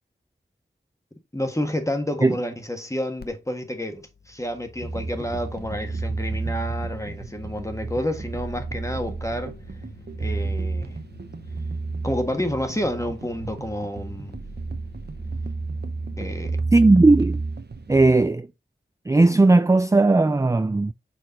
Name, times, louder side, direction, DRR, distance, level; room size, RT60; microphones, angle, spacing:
voice 1, 1.3-9.5 10.2-11.0 12.0-14.4 16.2-16.6, left 1 dB, 15° left, 1.4 m, -29 dB
sound 1, 3.2-3.3 3.6-16.6, left 3 dB, 50° left, 0.9 m, -47 dB
sound 2, 4.8-18.3, right 3 dB, 55° right, 0.8 m, -31 dB
voice 2, 16.7-17.4 17.9-18.5 19.1-20.9, right 2 dB, 15° right, 0.3 m, -17 dB
6.5 x 4.2 x 3.8 m
wide cardioid pair, 40°, 20 cm